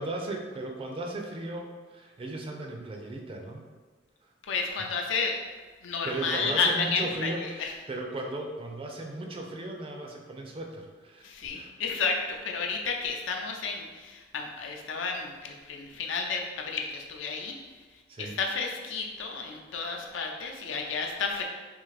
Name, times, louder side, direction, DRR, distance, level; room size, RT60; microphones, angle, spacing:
voice 1, 0.0-3.6 4.2-4.7 6.0-11.7 18.1-18.3, right 2 dB, 30° right, 2 dB, 0.4 m, -36 dB
voice 2, 4.5-5.4 5.8-7.7 11.2-17.5 18.2-21.4, left 4 dB, 85° left, 2 dB, 0.5 m, -31 dB
3.6 x 2.5 x 3.2 m, 1.4 s
head